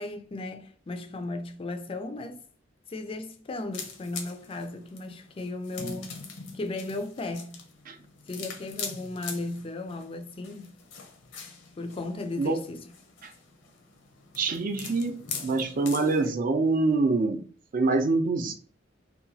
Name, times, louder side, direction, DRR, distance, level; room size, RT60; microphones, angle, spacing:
voice 1, 0.0-2.4 2.9-6.2 6.5-7.7 8.3-10.7 11.8-12.9, left 2 dB, 30° left, 0.3 m, -36 dB
sound 1, 3.7-16.3, left 5 dB, 75° left, 0.6 m, -42 dB
voice 2, 14.4-17.4 17.7-18.5, right 3 dB, 45° right, 0.4 m, -25 dB
2.8 x 2.2 x 2.7 m
head